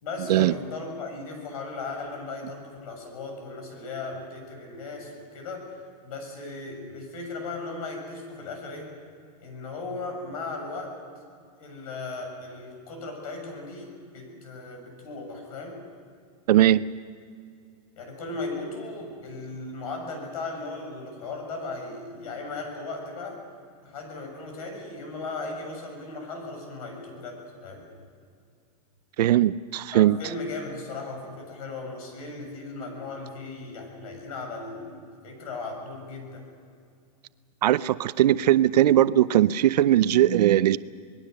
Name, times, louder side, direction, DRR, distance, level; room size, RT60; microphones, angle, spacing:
voice 1, 0.0-5.7 6.0-8.9 9.4-10.9 11.6-15.8 18.0-23.4 23.8-27.9 29.9-36.4, left 3 dB, 65° left, 3 dB, 7.1 m, -37 dB
voice 2, 16.5-16.8 29.2-30.2 37.6-40.8, right 12 dB, 85° right, 16 dB, 0.6 m, -19 dB
26.0 x 20.0 x 6.6 m, 2.3 s
supercardioid pair, 160°, 20 cm